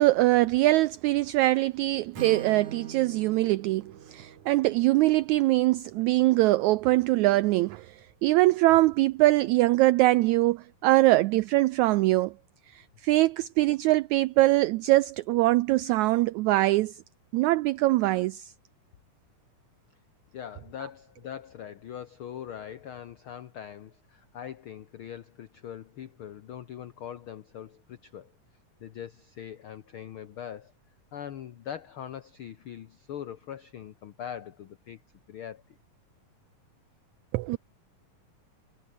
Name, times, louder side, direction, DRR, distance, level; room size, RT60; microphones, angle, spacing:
voice 1, 0.0-12.3 12.7-16.9 17.3-18.5 37.3-37.6, right 18 dB, 85° right, 1.6 m, -23 dB
Acoustic guitar / Strum, 2.1-6.1, right 6 dB, 60° right, 4.7 m, -43 dB
voice 2, 20.3-28.3 28.8-30.7 31.1-35.0 35.3-35.6, left 9 dB, 85° left, 1.1 m, -41 dB
omnidirectional pair, 3.9 m